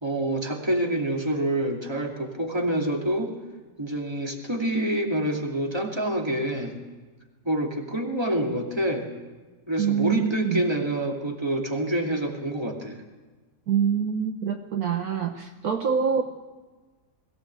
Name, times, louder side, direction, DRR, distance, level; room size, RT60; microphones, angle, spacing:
voice 1, 0.0-3.3 3.8-6.7 7.4-9.1 9.7-13.0, right 1 dB, 15° right, 1 dB, 2.5 m, -27 dB
voice 2, 9.8-10.6 13.7-16.2, right 7 dB, 60° right, 5 dB, 1.4 m, -25 dB
21.5 x 16.0 x 8.0 m, 1.3 s
omnidirectional pair, 1.9 m